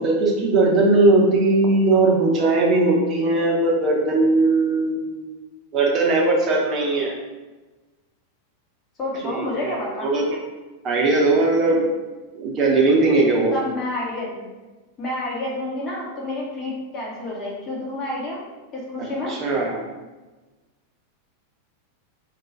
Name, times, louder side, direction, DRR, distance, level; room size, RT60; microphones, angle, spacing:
voice 1, 0.0-5.2 5.7-7.1 9.3-10.4 10.8-11.9 12.3-13.5 19.0-19.8, right 2 dB, 30° right, -2 dB, 0.7 m, -19 dB
voice 2, 9.0-10.1 13.5-14.4 15.0-18.4 18.7-19.3, left 1 dB, 30° left, -4 dB, 0.9 m, -29 dB
2.3 x 2.3 x 3.9 m, 1.2 s
figure-of-eight pair, 90°, 0 cm